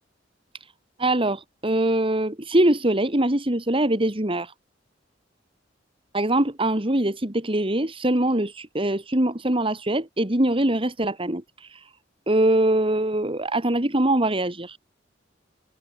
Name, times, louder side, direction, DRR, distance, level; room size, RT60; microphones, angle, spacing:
voice 1, 1.0-4.5 6.1-11.9 12.3-14.8, right 1 dB, 30° right, 2.8 m, -23 dB
open air
head